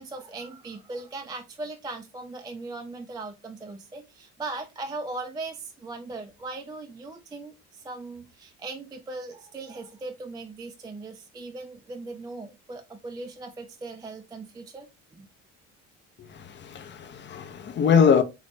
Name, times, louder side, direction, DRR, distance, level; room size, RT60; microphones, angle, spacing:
voice 1, 0.0-14.9 15.1-15.3, right 3 dB, 15° right, 0.3 m, -39 dB
voice 2, 16.2-18.2, left 7 dB, 35° left, 0.6 m, -23 dB
3.8 x 2.1 x 3.3 m
cardioid pair, 100°, 32 cm